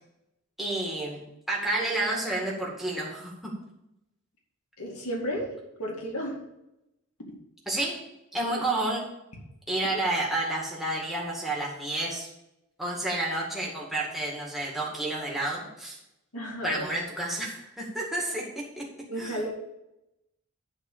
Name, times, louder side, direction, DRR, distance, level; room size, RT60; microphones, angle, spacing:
voice 1, 0.6-3.5 7.7-7.9 8.3-9.1 9.7-12.3 12.8-16.0 16.6-18.9 19.2-19.4, right 2 dB, ahead, -4 dB, 2.0 m, -30 dB
voice 2, 4.8-5.5 5.8-6.4 16.3-17.0 19.1-19.5, equal, 85° left, -1 dB, 2.3 m, -33 dB
11.0 x 4.2 x 7.2 m, 0.89 s
head